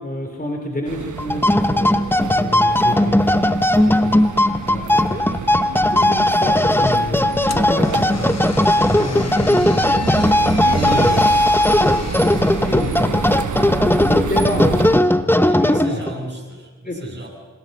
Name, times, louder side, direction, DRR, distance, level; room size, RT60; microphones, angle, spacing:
voice 1, 0.0-2.0 2.4-3.4 3.8-4.3 4.6-8.6 9.0-11.4 11.7-12.3 12.6-13.3 13.6-16.0 16.8-17.2, left 1 dB, 25° left, 2 dB, 3.4 m, -29 dB
sound 1, 0.8-15.0, right 7 dB, 65° right, 1.1 m, -29 dB
sound 2, 1.2-16.2, left 1 dB, 5° left, 1.0 m, -17 dB
sound 3, 7.4-13.6, left 5 dB, 50° left, 1.2 m, -37 dB
voice 2, 15.5-17.3, right 1 dB, 30° right, -1 dB, 7.1 m, -36 dB
25.5 x 21.0 x 5.5 m, 1.4 s
cardioid pair, 45°, 33 cm